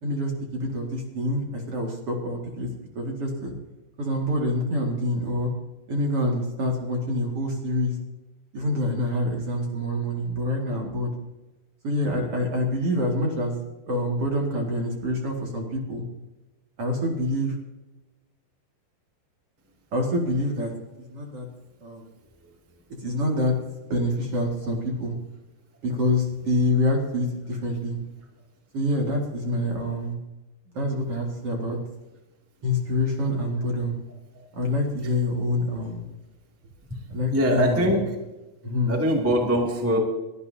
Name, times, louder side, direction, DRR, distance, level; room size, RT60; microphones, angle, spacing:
voice 1, 0.0-2.7 3.0-3.5 4.0-5.5 5.9-8.0 8.5-11.1 11.8-13.6 13.9-16.0 16.8-17.5 19.9-20.7 21.0-21.5 21.8-22.0 23.0-23.5 23.9-25.1 25.8-28.0 28.7-30.2 30.7-31.8 32.6-34.0 34.5-36.1 37.1-38.0 38.6-39.0, left 1 dB, 45° right, 0 dB, 2.3 m, -26 dB
voice 2, 22.2-22.5 36.9-37.0 37.3-38.1 38.9-40.0, equal, 10° right, 0 dB, 1.0 m, -23 dB
22.5 x 12.5 x 2.8 m, 1.1 s
omnidirectional pair, 5.0 m